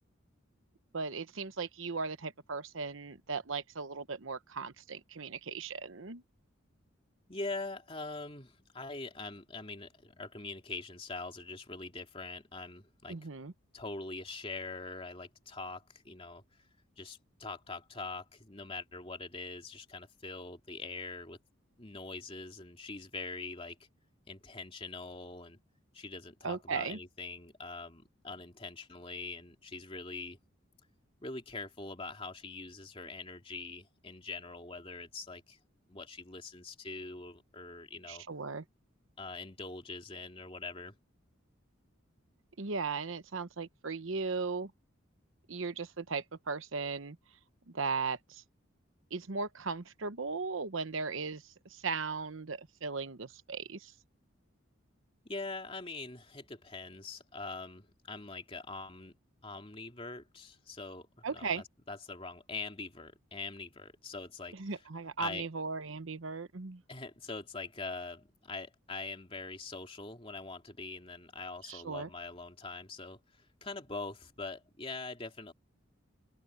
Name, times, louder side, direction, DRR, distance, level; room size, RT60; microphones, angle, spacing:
voice 1, 0.9-6.2 13.1-13.5 26.4-27.0 38.1-38.6 42.6-44.7 45.5-47.2 47.7-48.4 49.1-53.9 61.2-61.6 64.5-66.8 71.7-72.1, right 4 dB, 75° right, 1.0 m, -37 dB
voice 2, 7.3-13.2 13.7-16.4 17.0-21.4 21.8-23.8 24.3-25.6 25.9-30.4 31.2-35.6 35.9-38.2 39.2-41.0 55.2-59.2 59.4-64.8 65.2-65.5 66.9-75.5, left 3 dB, 25° left, 2.7 m, -43 dB
open air
head